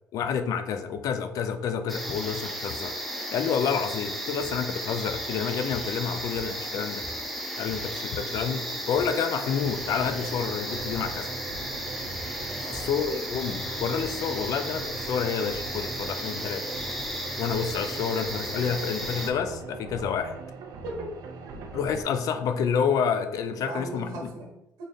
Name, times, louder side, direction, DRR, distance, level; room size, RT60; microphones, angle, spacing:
voice 1, 0.1-2.9 3.3-7.0 7.6-11.3 12.7-16.6 17.4-20.3 21.7-24.3, left 7 dB, 60° left, 9 dB, 0.4 m, -29 dB
sound 1, 1.9-19.3, equal, ahead, 0.5 m, -34 dB
sound 2, 4.4-4.6 5.1-5.3 5.7-6.7 7.0-7.2 7.5-8.0 8.3-9.2 9.5-9.8 10.2-10.4 10.9-11.2 11.5-13.5, equal, 25° right, 1.1 m, -46 dB
sound 3, 9.7-22.0, right 3 dB, 60° right, 0.5 m, -41 dB
voice 2, 12.4-13.1 20.7-21.1 21.4-21.5 23.5-24.8, right 2 dB, 90° right, -1 dB, 1.2 m, -39 dB
3.9 x 2.6 x 3.2 m, 0.88 s
cardioid pair, 140°, 7 cm